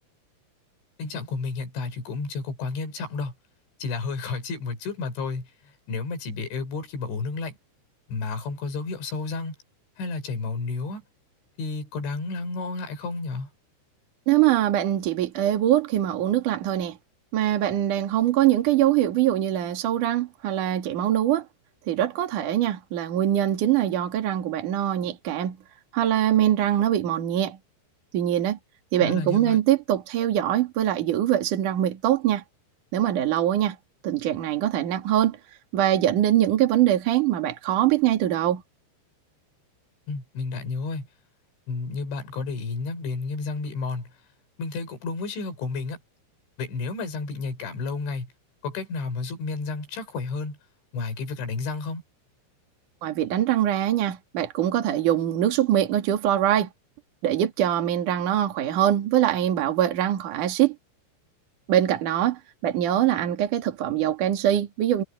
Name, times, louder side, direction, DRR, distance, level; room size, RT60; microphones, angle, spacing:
voice 1, 1.0-3.3 3.8-7.6 8.1-9.6 10.0-11.0 11.6-13.5 29.0-29.6 40.1-41.1 41.7-44.1 44.6-46.0 46.6-48.3 48.6-50.6 50.9-52.0, left 4 dB, 65° left, 6.9 m, -31 dB
voice 2, 14.3-17.0 17.3-21.5 21.9-25.6 25.9-27.6 28.1-28.6 28.9-32.4 32.9-33.8 34.0-35.4 35.7-38.6 53.0-56.7 57.2-60.8 61.7-65.0, right 12 dB, 50° right, 3.0 m, -23 dB
omnidirectional pair, 5.7 m